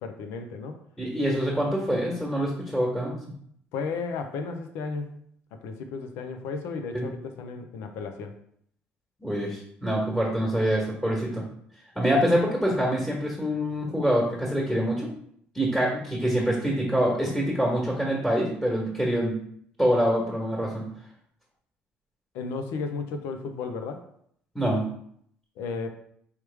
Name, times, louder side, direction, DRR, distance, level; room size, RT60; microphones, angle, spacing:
voice 1, 0.0-0.8 3.7-5.2 5.5-8.3 22.3-24.0 25.6-25.9, left 4 dB, 85° left, 6 dB, 0.6 m, -34 dB
voice 2, 1.0-3.1 6.9-7.0 9.2-11.4 11.9-15.1 15.5-19.4 19.8-20.8 24.5-24.8, equal, 5° left, -4 dB, 1.4 m, -25 dB
4.8 x 3.1 x 3.4 m, 0.67 s
cardioid pair, 100°, 4 cm